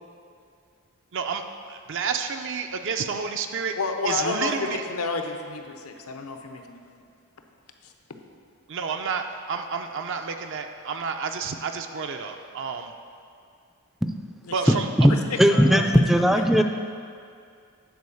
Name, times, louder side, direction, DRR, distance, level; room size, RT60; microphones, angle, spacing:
voice 1, 1.1-3.7 4.0-4.8 8.7-12.9 14.5-15.1, right 5 dB, 60° right, 5 dB, 0.5 m, -30 dB
voice 2, 3.7-7.0 7.8-7.9 14.4-14.8 15.1-16.6, left 4 dB, 85° left, 5 dB, 0.8 m, -31 dB
voice 3, 15.4-16.6, equal, ahead, 6 dB, 0.3 m, -17 dB
9.5 x 4.5 x 7.0 m, 2.3 s
head